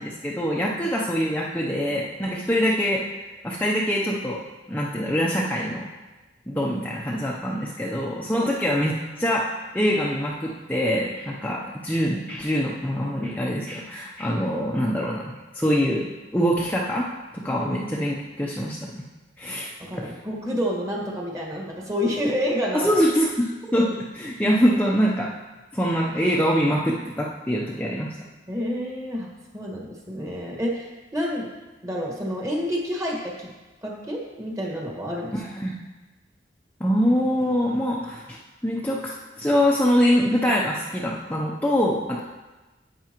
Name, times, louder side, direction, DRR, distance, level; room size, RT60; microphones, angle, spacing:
voice 1, 0.0-3.0 3.4-4.4 4.7-5.8 6.5-16.0 16.3-17.1 17.4-19.0 19.4-20.2 22.7-25.3 25.7-28.2 35.3-35.8 36.8-38.4 38.6-42.2, equal, 10° left, -4 dB, 0.7 m, -24 dB
voice 2, 19.8-22.9 28.5-31.5 31.8-33.5 33.8-35.3, equal, 20° right, -1 dB, 1.6 m, -29 dB
10.5 x 8.4 x 3.0 m, 1.2 s
head